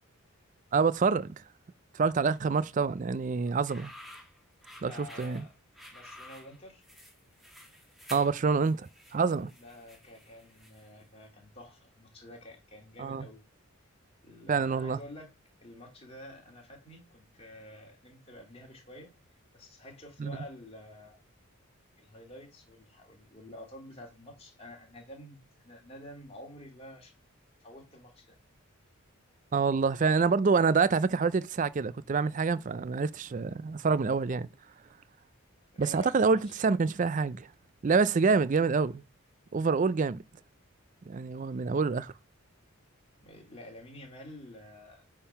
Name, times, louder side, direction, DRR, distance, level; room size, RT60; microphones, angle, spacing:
voice 1, 0.7-1.4 1.9-3.9 4.8-5.4 8.1-9.5 13.0-13.3 14.5-15.0 20.2-20.4 29.5-34.5 35.8-37.5 37.8-39.0 39.5-40.2 41.1-42.1, right 4 dB, 35° right, 0.3 m, -27 dB
sound 1, 3.5-11.0, left 1 dB, ahead, 1.4 m, -51 dB
voice 2, 4.9-5.5 5.9-6.8 9.6-13.4 14.2-15.3 15.6-19.1 19.5-21.2 22.0-27.1 27.6-28.4 35.7-36.4 43.2-45.0, left 1 dB, 25° left, 2.4 m, -49 dB
8.7 x 3.7 x 5.6 m
head